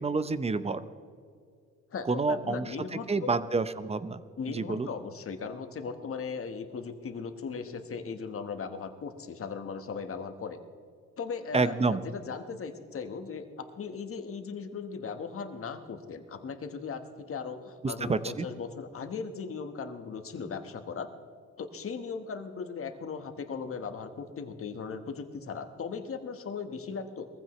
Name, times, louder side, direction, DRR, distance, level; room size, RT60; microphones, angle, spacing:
voice 1, 0.0-0.8 2.1-2.8 3.1-4.2 4.5-4.9 11.5-12.0 17.8-18.5, right 4 dB, 20° right, 13 dB, 0.7 m, -28 dB
voice 2, 1.9-3.3 4.4-10.6 11.2-21.1 21.6-27.3, left 5 dB, 45° left, 7 dB, 1.4 m, -38 dB
22.0 x 15.0 x 3.2 m, 2.2 s
cardioid pair, 90°, 30 cm